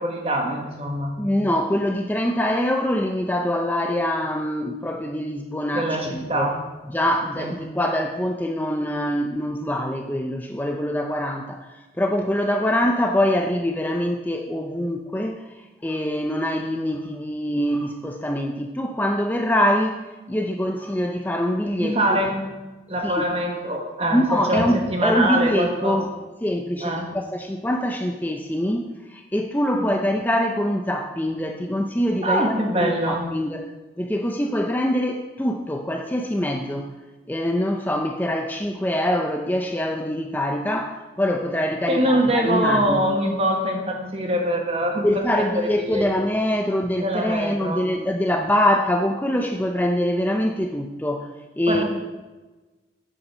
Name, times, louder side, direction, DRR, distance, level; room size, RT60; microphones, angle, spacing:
voice 1, 0.0-1.2 5.7-6.6 7.4-7.5 21.8-22.5 22.9-26.0 26.8-27.2 32.2-33.3 41.9-46.1 47.0-47.9 51.7-51.8, right 1 dB, 35° right, 2 dB, 1.6 m, -24 dB
voice 2, 1.2-6.5 6.9-22.2 23.0-23.3 24.1-26.1 26.4-33.7 34.0-36.9 37.3-43.0 45.0-51.3 51.6-51.8, left 1 dB, 10° left, 3 dB, 0.5 m, -24 dB
8.5 x 8.1 x 6.1 m, 1.2 s
head